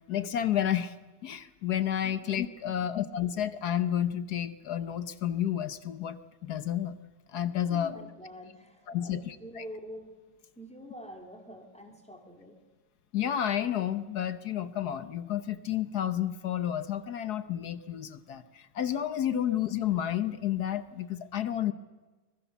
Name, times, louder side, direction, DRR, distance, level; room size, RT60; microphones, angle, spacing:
voice 1, 0.1-0.9 1.2-7.0 7.3-7.9 8.9-9.6 13.1-21.7, left 10 dB, 60° left, 13 dB, 1.3 m, -31 dB
voice 2, 7.7-10.2 10.5-12.6, equal, 5° left, 3 dB, 3.1 m, -46 dB
25.0 x 21.0 x 7.1 m, 1.2 s
omnidirectional pair, 2.2 m